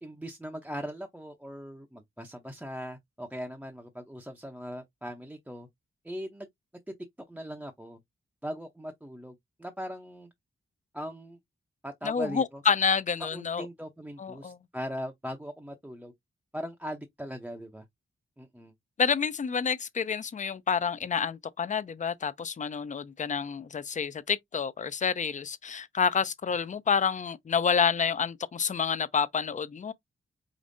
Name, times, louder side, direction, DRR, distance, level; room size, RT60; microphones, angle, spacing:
voice 1, 0.0-5.7 6.0-6.5 7.3-8.0 8.4-10.3 10.9-11.4 11.8-12.6 13.2-16.1 16.5-17.8 18.4-18.7, equal, 5° right, 0.6 m, -40 dB
voice 2, 12.0-13.7 14.2-14.6 19.0-29.9, left 6 dB, 35° left, 0.5 m, -28 dB
5.2 x 3.0 x 2.6 m
wide cardioid pair, 125°, 21 cm